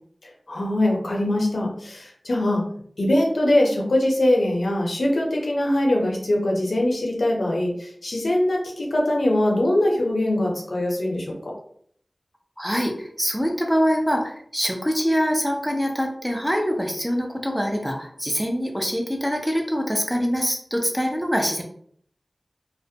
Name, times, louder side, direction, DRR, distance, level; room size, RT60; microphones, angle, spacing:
voice 1, 0.2-2.6 3.0-11.5, left 1 dB, 85° left, -1 dB, 0.6 m, -22 dB
voice 2, 12.6-21.6, equal, 5° right, 1 dB, 0.5 m, -24 dB
2.4 x 2.1 x 2.6 m, 0.62 s
wide cardioid pair, 45°, 0 cm